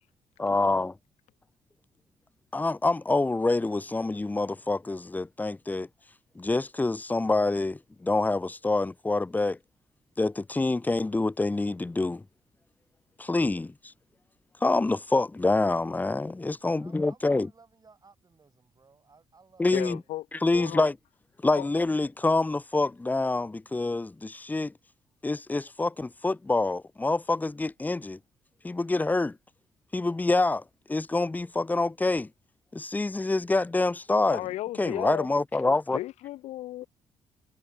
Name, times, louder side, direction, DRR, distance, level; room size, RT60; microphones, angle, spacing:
voice 1, 0.4-0.9 2.5-5.9 6.4-9.6 10.2-12.2 13.2-13.7 14.6-17.5 19.6-20.0 20.4-20.9 21.4-24.7 25.2-28.2 28.6-29.4 29.9-30.6 30.9-32.3 32.7-34.4 34.8-36.0, left 2 dB, 15° left, 0.6 m, -26 dB
voice 2, 16.6-20.0, right 4 dB, 35° right, 6.9 m, -58 dB
voice 3, 19.7-20.3 20.5-20.9 21.6-21.7 34.2-35.3 35.9-36.9, left 15 dB, 85° left, 1.2 m, -35 dB
supercardioid pair, 65°, 11 cm